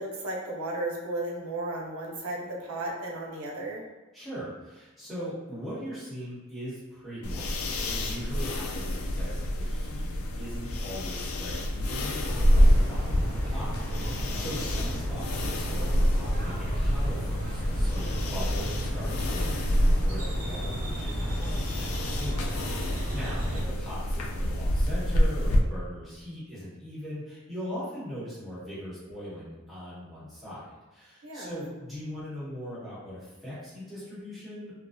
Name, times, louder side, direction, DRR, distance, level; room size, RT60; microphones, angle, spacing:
voice 1, 0.0-3.8 14.4-14.7 23.5-23.7 31.2-31.7, right 2 dB, 90° right, -2 dB, 0.6 m, -35 dB
voice 2, 4.1-10.1 10.4-34.7, equal, ahead, -13 dB, 1.0 m, -40 dB
sound 1, 7.2-25.6, equal, 75° left, 0.3 m, -28 dB
sound 2, 12.2-23.6, equal, 45° right, 0.5 m, -33 dB
2.4 x 2.2 x 2.5 m, 1.2 s
head